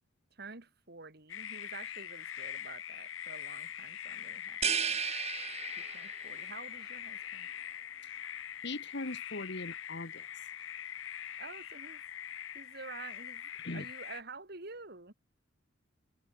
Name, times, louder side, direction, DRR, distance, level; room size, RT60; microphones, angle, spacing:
voice 1, 0.3-5.0 5.8-7.5 11.4-12.0 12.5-15.1, right 4 dB, 55° right, 3.2 m, -49 dB
sound 1, 1.3-14.2, left 10 dB, 80° left, 0.8 m, -43 dB
sound 2, 4.6-6.3, right 7 dB, 35° right, 1.5 m, -34 dB
voice 2, 8.6-10.3 13.6-13.8, left 2 dB, 60° left, 1.7 m, -40 dB
head